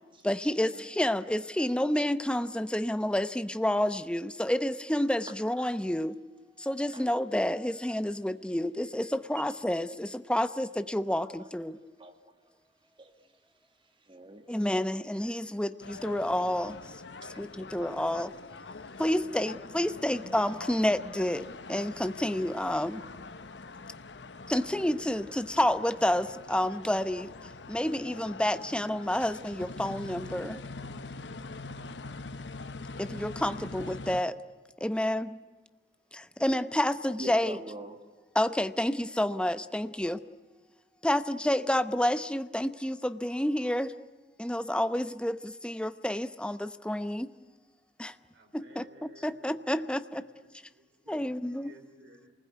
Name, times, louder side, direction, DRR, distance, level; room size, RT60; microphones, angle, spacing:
voice 1, 0.2-6.2 6.6-11.8 14.5-16.8 17.4-18.3 19.0-23.0 24.5-27.3 27.7-30.6 33.0-34.4 34.8-35.4 36.1-37.6 38.3-40.2 41.0-43.9 44.4-47.3 48.0-48.1 48.5-50.2 51.1-51.7, left 1 dB, 5° left, 11 dB, 0.8 m, -29 dB
voice 2, 12.0-12.3 13.0-13.1 14.0-14.4 37.2-38.0, right 1 dB, 30° right, 6 dB, 2.0 m, -43 dB
sound 1, 15.8-34.2, left 3 dB, 85° left, 1.1 m, -44 dB
voice 3, 48.3-52.3, equal, 85° right, 5 dB, 4.5 m, -57 dB
27.5 x 20.5 x 9.4 m, 1.3 s
head